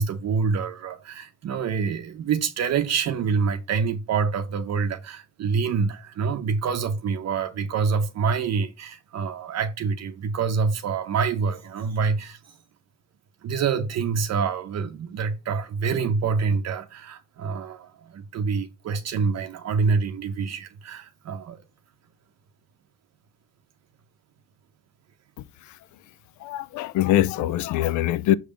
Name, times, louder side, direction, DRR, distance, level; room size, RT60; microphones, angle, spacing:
voice 1, 0.0-12.6 13.4-21.6, right 5 dB, 60° right, 0.7 m, -26 dB
voice 2, 26.4-28.4, left 13 dB, 75° left, 0.4 m, -23 dB
6.3 x 3.4 x 4.9 m
cardioid pair, 90°, 30 cm